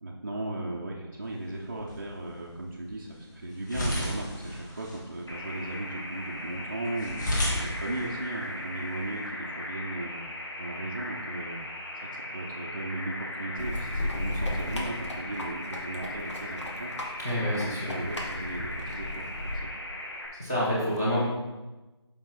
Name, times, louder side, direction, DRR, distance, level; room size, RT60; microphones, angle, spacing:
voice 1, 0.0-7.2 7.5-10.2 10.6-11.6 12.3-16.9 17.4-19.7, right 2 dB, 30° right, -5 dB, 0.6 m, -36 dB
sound 1, 1.2-9.3, left 1 dB, 40° left, 1.9 m, -36 dB
sound 2, 5.3-20.3, left 1 dB, 60° left, 1.7 m, -38 dB
sound 3, 13.6-19.6, left 1 dB, 80° left, 1.8 m, -35 dB
voice 2, 17.2-17.9 20.4-21.2, equal, 5° left, -8 dB, 0.7 m, -27 dB
7.3 x 5.2 x 3.9 m, 1.2 s
figure-of-eight pair, 170°, 15 cm